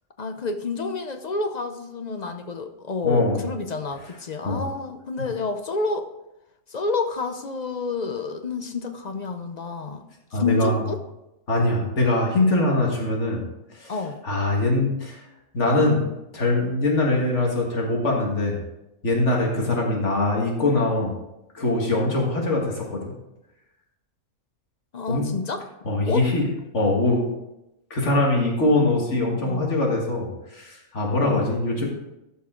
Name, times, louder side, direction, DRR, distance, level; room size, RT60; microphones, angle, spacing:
voice 1, 0.2-6.1 6.7-10.0 10.3-11.0 13.9-14.2 24.9-25.7 26.1-26.3 28.6-29.8 31.2-31.5, left 4 dB, 45° left, 8 dB, 0.6 m, -29 dB
voice 2, 3.0-3.4 4.4-4.6 10.3-10.8 11.5-13.4 13.8-13.9 14.2-15.2 15.5-16.0 16.3-18.6 19.0-21.1 21.5-23.1 25.1-25.3 25.8-26.4 26.7-27.2 27.9-30.3 30.5-31.8, left 2 dB, 65° left, -1 dB, 2.1 m, -22 dB
13.5 x 5.6 x 3.8 m, 0.91 s
omnidirectional pair, 1.3 m